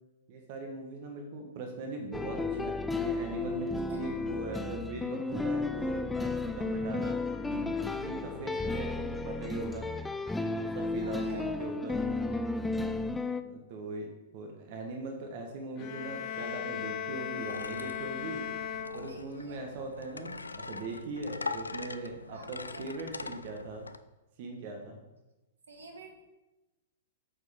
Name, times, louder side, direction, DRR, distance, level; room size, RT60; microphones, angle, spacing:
voice 1, 0.3-7.2 7.4-9.9 10.7-12.0 13.4-18.4 18.9-23.9 24.4-25.0, right 3 dB, 45° right, 3 dB, 1.3 m, -40 dB
sound 1, 2.1-13.4, left 3 dB, 5° left, 0.4 m, -33 dB
voice 2, 11.0-11.5 12.2-12.6 19.1-19.7 22.3-22.9 25.7-26.2, right 3 dB, 70° right, 2 dB, 1.5 m, -50 dB
sound 2, 15.8-19.6, left 8 dB, 35° left, 0.7 m, -38 dB
sound 3, 17.5-24.0, left 3 dB, 80° left, 0.4 m, -42 dB
8.6 x 6.5 x 3.7 m, 1.0 s
figure-of-eight pair, 105°, 0 cm